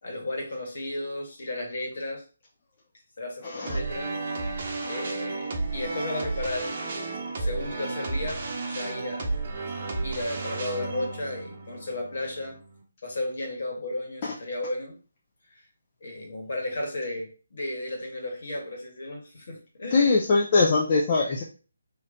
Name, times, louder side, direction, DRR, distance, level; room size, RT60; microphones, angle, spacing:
voice 1, 0.0-2.2 3.2-4.1 4.5-9.3 10.0-12.6 13.0-15.0 15.5-15.6 16.0-20.2, left 1 dB, 60° left, 2 dB, 1.6 m, -34 dB
voice 2, 3.4-3.8 14.2-14.3 19.9-21.4, left 3 dB, 35° left, -2 dB, 0.6 m, -22 dB
sound 1, 3.7-12.8, right 3 dB, 45° right, 0.8 m, -33 dB
3.2 x 2.8 x 3.9 m, 0.37 s
figure-of-eight pair, 150°, 0 cm